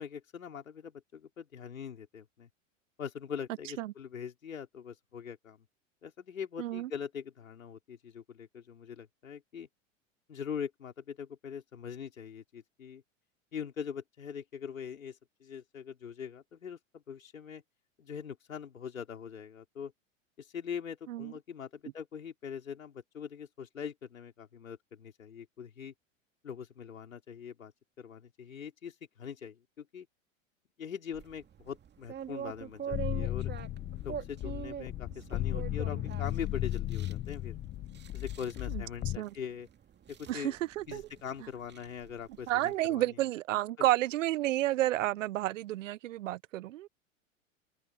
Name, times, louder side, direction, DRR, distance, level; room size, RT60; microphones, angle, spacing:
voice 1, 0.0-2.5 3.0-5.6 6.0-9.7 10.3-13.0 13.5-17.6 18.0-19.9 20.4-25.9 26.4-27.7 28.0-30.1 30.8-33.5 34.0-37.6 38.1-39.7 40.1-40.6 40.9-43.2 43.8-43.9, left 7 dB, 85° left, 4.8 m, -42 dB
voice 2, 6.6-6.9 21.1-21.3 39.2-39.3 40.3-41.0 42.5-46.9, right 15 dB, 70° right, 0.8 m, -31 dB
sound 1, 31.1-42.8, right 9 dB, 25° right, 2.3 m, -45 dB
sound 2, 32.9-39.2, left 15 dB, 20° left, 0.4 m, -35 dB
hypercardioid pair, 95°, 39 cm